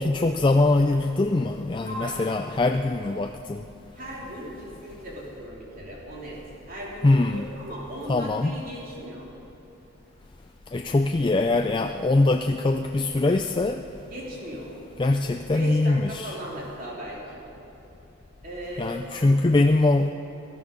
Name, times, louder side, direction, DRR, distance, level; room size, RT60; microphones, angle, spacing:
voice 1, 0.0-3.6 7.0-7.5 8.1-8.5 10.7-13.8 15.0-16.4 18.8-20.1, left 2 dB, 20° left, 5 dB, 0.3 m, -22 dB
voice 2, 1.9-2.3 3.9-6.4 6.6-9.3 14.1-14.7 15.3-17.4 18.4-19.2, equal, 40° right, -4 dB, 3.2 m, -37 dB
18.5 x 12.5 x 5.3 m, 3.0 s
head